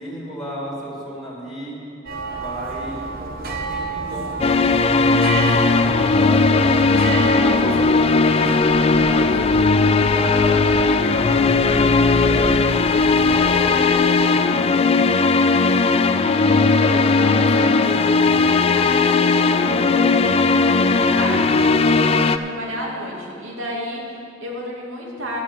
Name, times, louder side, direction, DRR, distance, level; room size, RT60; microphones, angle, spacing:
voice 1, 0.0-1.8 2.3-6.9 7.3-12.8 13.3-14.6, equal, 5° left, -8 dB, 2.6 m, -33 dB
sound 1, 2.0-13.5, right 3 dB, 50° right, 1.2 m, -31 dB
sound 2, 4.4-22.4, left 4 dB, 30° left, 0.3 m, -17 dB
voice 2, 16.0-25.4, equal, 85° right, -3 dB, 2.4 m, -32 dB
11.5 x 9.4 x 5.9 m, 2.6 s
head